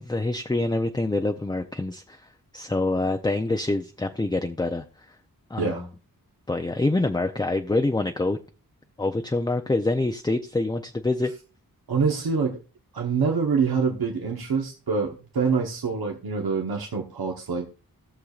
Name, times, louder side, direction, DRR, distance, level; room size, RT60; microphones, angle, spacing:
voice 1, 0.0-4.8 5.5-5.9 6.5-8.4 9.0-11.3, left 2 dB, 10° left, 5 dB, 0.5 m, -26 dB
voice 2, 5.6-5.9 11.9-12.6 12.9-17.7, right 5 dB, 85° right, 1 dB, 1.2 m, -25 dB
17.0 x 6.6 x 2.4 m, 0.34 s
wide cardioid pair, 105°, 36 cm